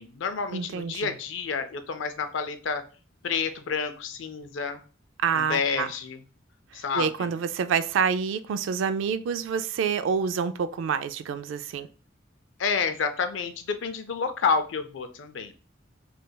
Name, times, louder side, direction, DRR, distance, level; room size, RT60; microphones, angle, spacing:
voice 1, 0.0-2.8 3.2-4.8 5.3-6.2 6.7-7.3 12.6-15.5, left 5 dB, 80° left, 0.5 m, -29 dB
voice 2, 0.5-1.1 5.2-5.9 6.9-11.9, right 6 dB, 80° right, 0.3 m, -27 dB
3.2 x 3.2 x 2.2 m
head